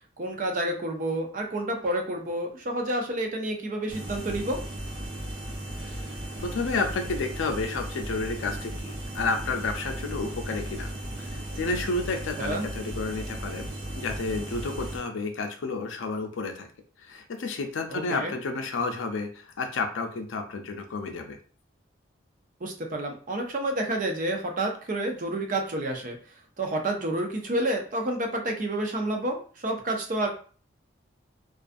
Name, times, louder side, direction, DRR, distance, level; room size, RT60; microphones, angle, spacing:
voice 1, 0.2-4.6 12.4-12.7 17.9-18.3 22.6-26.2 26.6-30.3, right 1 dB, 40° right, 3 dB, 0.4 m, -29 dB
sound 1, 3.9-15.0, right 1 dB, 85° right, 0.7 m, -36 dB
voice 2, 5.8-6.1 6.4-10.9 11.2-13.7 14.0-16.7 17.0-21.4, left 3 dB, 80° left, 4 dB, 0.4 m, -31 dB
2.4 x 2.3 x 2.5 m, 0.41 s
head